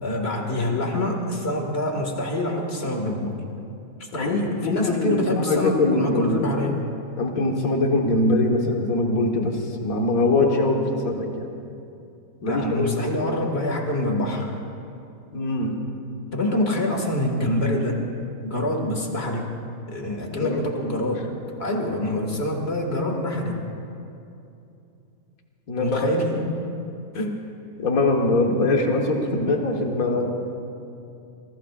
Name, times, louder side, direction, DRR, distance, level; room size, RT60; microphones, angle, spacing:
voice 1, 0.0-3.4 4.0-6.7 12.5-14.6 16.3-18.0 18.4-19.5 19.9-21.3 21.6-23.6 25.8-26.5 27.1-27.3, left 1 dB, 45° left, 1 dB, 2.3 m, -26 dB
voice 2, 4.1-6.5 7.2-11.5 12.4-13.0 13.3-13.4 15.3-15.7 20.4-20.6 25.7-26.1 27.1-27.3 27.8-30.3, left 2 dB, 80° left, 1 dB, 1.9 m, -23 dB
26.0 x 22.0 x 2.5 m, 2.6 s
omnidirectional pair, 1.5 m